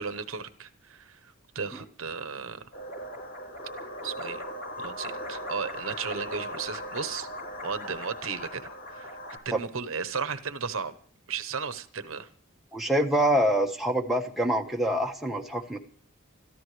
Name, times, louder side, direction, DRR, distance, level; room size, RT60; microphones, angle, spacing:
voice 1, 0.0-2.7 4.0-4.4 4.8-7.3 7.6-9.1 9.4-10.9 11.3-12.3, right 5 dB, 70° right, 0.9 m, -35 dB
sound 1, 2.7-9.4, equal, 75° left, 4.0 m, -38 dB
voice 2, 12.7-15.8, right 1 dB, ahead, 1.3 m, -25 dB
26.5 x 14.0 x 3.3 m
head